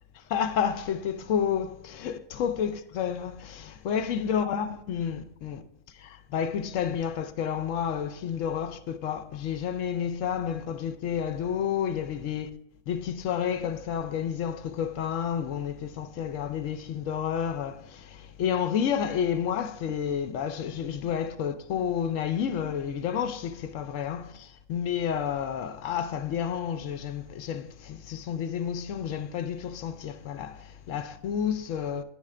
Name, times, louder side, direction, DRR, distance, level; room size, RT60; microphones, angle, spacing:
voice 1, 0.3-5.6 6.0-12.5 12.9-32.0, left 8 dB, 70° left, 0.9 m, -30 dB
9.7 x 3.2 x 4.8 m
omnidirectional pair, 1.4 m